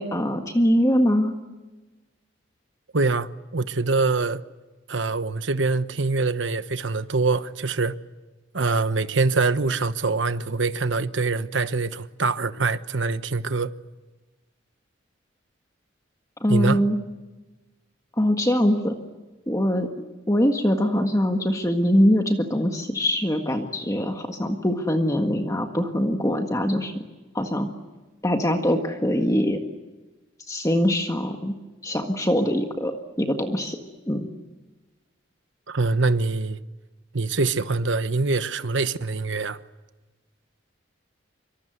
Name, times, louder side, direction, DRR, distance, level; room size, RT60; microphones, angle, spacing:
voice 1, 0.0-1.3 16.4-17.0 18.2-18.9 19.5-19.9 20.3-27.0 27.3-27.7 28.2-29.6 30.5-31.5 31.8-33.8 34.1-34.3, equal, 15° left, 1.7 m, -23 dB
voice 2, 2.9-4.4 4.9-7.9 8.5-13.7 16.5-16.8 35.7-36.6 37.1-39.6, right 3 dB, 75° right, 1.1 m, -24 dB
25.5 x 25.0 x 8.1 m
head